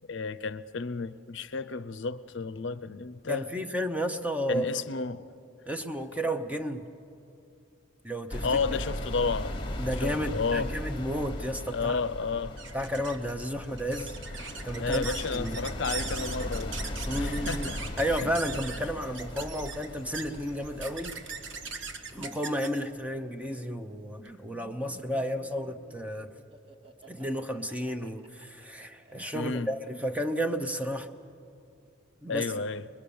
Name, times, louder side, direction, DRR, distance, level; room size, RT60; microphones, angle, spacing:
voice 1, 0.1-3.6 4.5-5.3 8.4-9.6 10.0-10.7 11.7-12.6 14.8-16.8 17.1-17.8 18.1-18.3 29.3-29.7 32.3-32.8, left 4 dB, 65° left, 0.6 m, -32 dB
voice 2, 3.3-4.7 5.7-6.9 8.0-8.5 9.8-12.0 12.7-14.2 14.6-15.6 17.0-21.2 22.1-26.3 27.1-31.1 32.2-32.5, equal, 5° right, 0.8 m, -32 dB
sound 1, 8.3-22.3, left 1 dB, 25° left, 1.3 m, -38 dB
sound 2, 12.5-24.3, right 5 dB, 65° right, 1.4 m, -41 dB
Laughter, 24.2-30.1, right 2 dB, 25° right, 1.2 m, -54 dB
24.0 x 21.0 x 7.0 m
head